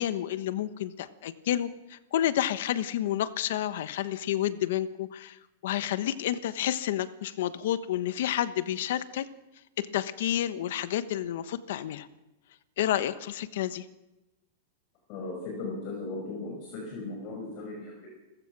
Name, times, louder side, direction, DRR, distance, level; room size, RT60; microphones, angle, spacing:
voice 1, 0.0-9.3 9.8-12.1 12.8-13.8, left 12 dB, 65° left, 13 dB, 1.1 m, -30 dB
voice 2, 15.1-18.2, left 3 dB, 35° left, 0 dB, 5.5 m, -37 dB
29.0 x 15.0 x 6.1 m, 1.0 s
supercardioid pair, 165°, 0 cm